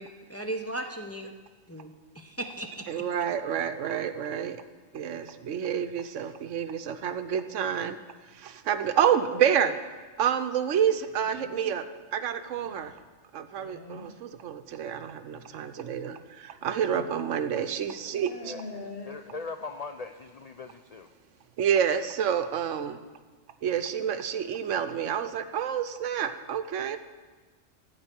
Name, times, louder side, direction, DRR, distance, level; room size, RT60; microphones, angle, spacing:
voice 1, 0.0-1.3 1.7-2.8, right 1 dB, 15° left, 3 dB, 0.6 m, -37 dB
voice 2, 2.9-4.6 4.9-8.0 8.3-9.8 10.2-11.8 12.1-13.0 13.3-18.5 21.6-23.0 23.6-27.0, right 8 dB, 75° right, 10 dB, 1.0 m, -28 dB
sound 1, 11.1-11.8 12.5-12.9 13.5-14.1 15.3-15.4 16.6-17.2 17.5-17.6 18.1-19.1, left 3 dB, 50° left, 1.3 m, -44 dB
voice 3, 18.4-21.1, left 4 dB, 65° left, 7 dB, 0.3 m, -40 dB
14.5 x 4.8 x 8.9 m, 1.4 s
omnidirectional pair, 1.3 m